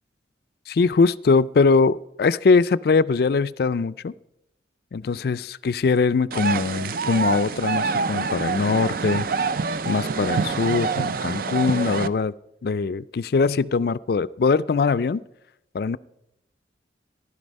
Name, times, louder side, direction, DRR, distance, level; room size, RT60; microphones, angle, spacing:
voice 1, 0.7-4.1 4.9-9.3 9.8-12.3 12.6-15.2 15.7-16.0, left 4 dB, 55° left, 17 dB, 0.4 m, -21 dB
sound 1, 6.3-12.1, right 4 dB, 50° right, 0.5 m, -26 dB
15.5 x 11.5 x 5.3 m, 0.87 s
head